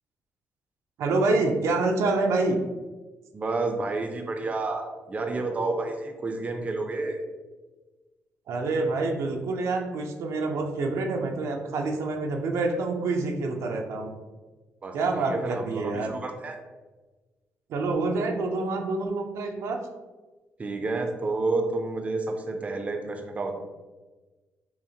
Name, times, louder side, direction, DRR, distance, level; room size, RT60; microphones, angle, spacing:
voice 1, 1.0-2.6 8.5-14.1 14.9-16.1 17.7-19.8, right 3 dB, 80° right, 2 dB, 0.5 m, -27 dB
voice 2, 3.3-7.2 14.8-16.6 20.6-23.5, right 3 dB, 30° right, 4 dB, 0.5 m, -30 dB
5.7 x 2.1 x 2.8 m, 1.2 s
cardioid pair, 105°, 5 cm